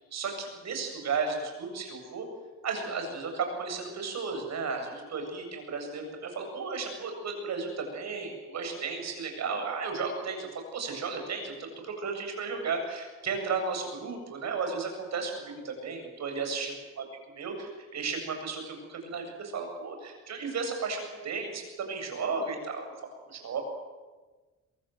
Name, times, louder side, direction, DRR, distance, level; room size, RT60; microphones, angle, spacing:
voice 1, 0.1-2.3 2.6-17.0 17.4-22.9 23.3-23.6, right 4 dB, 60° right, 4 dB, 7.6 m, -34 dB
24.5 x 22.5 x 7.8 m, 1.3 s
cardioid pair, 90°, 30 cm